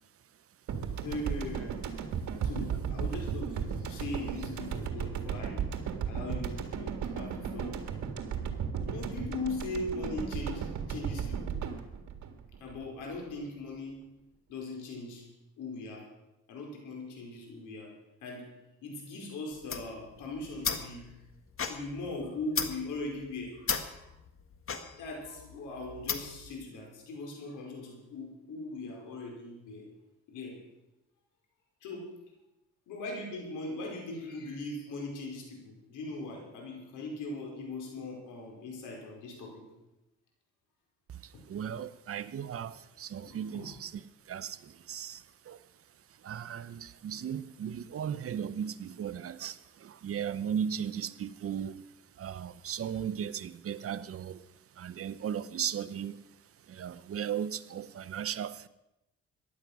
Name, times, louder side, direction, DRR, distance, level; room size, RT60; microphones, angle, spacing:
sound 1, 0.7-13.1, right 7 dB, 70° right, 1.8 m, -35 dB
voice 1, 1.0-1.8 2.4-5.6 6.1-7.8 8.9-11.6 12.6-14.0 14.5-15.3 15.6-16.1 16.5-17.9 18.2-18.5 18.8-21.1 21.7-24.1 25.0-29.8 30.3-30.6 31.8-32.1 32.9-39.6 43.2-43.7, left 2 dB, 90° left, 5.0 m, -40 dB
sound 2, 19.5-26.5, left 6 dB, 45° left, 1.6 m, -37 dB
voice 2, 41.1-45.6 46.2-51.8 52.2-54.5 54.8-56.2 56.7-58.7, right 8 dB, 50° right, 0.8 m, -37 dB
15.0 x 11.0 x 6.1 m
cardioid pair, 90°, 30 cm